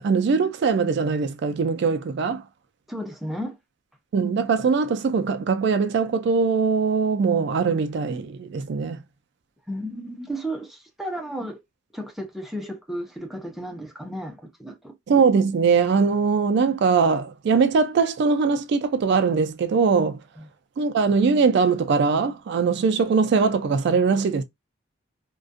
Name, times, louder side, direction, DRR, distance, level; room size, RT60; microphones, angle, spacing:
voice 1, 0.0-2.4 4.1-9.0 15.1-20.2 20.8-24.4, right 5 dB, 60° right, 0.3 m, -21 dB
voice 2, 2.9-3.5 9.7-11.6 11.9-14.9 20.4-20.5, equal, ahead, 0.5 m, -33 dB
2.4 x 2.2 x 2.5 m
head